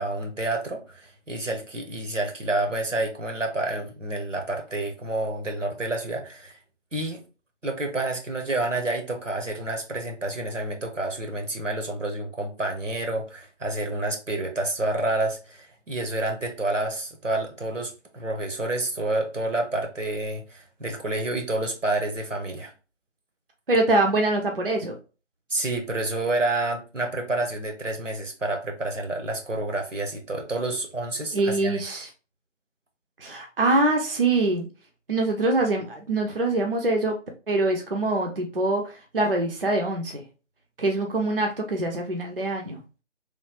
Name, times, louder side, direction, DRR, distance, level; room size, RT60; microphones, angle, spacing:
voice 1, 0.0-6.5 6.9-7.2 7.6-22.7 25.5-31.8, right 2 dB, 85° right, 1.0 m, -29 dB
voice 2, 23.7-25.0 31.3-32.1 33.2-34.7 35.1-37.2 37.5-38.8 39.1-40.2 40.8-42.8, right 2 dB, 50° right, 0.5 m, -24 dB
3.1 x 2.2 x 2.9 m
figure-of-eight pair, 165°, 37 cm